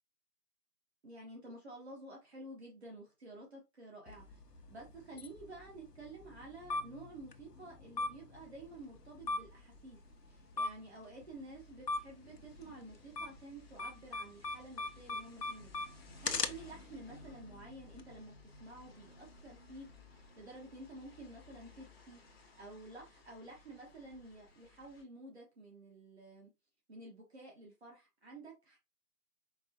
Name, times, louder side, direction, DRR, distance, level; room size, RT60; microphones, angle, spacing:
voice 1, 1.0-4.4 4.7-15.7 16.2-26.5 26.9-28.8, right 2 dB, 40° right, 1.1 m, -51 dB
sound 1, 4.1-18.0, left 3 dB, 80° left, 0.9 m, -43 dB
sound 2, 8.3-25.0, left 3 dB, 40° left, 0.9 m, -60 dB
4.6 x 3.3 x 2.6 m
figure-of-eight pair, 155°, 48 cm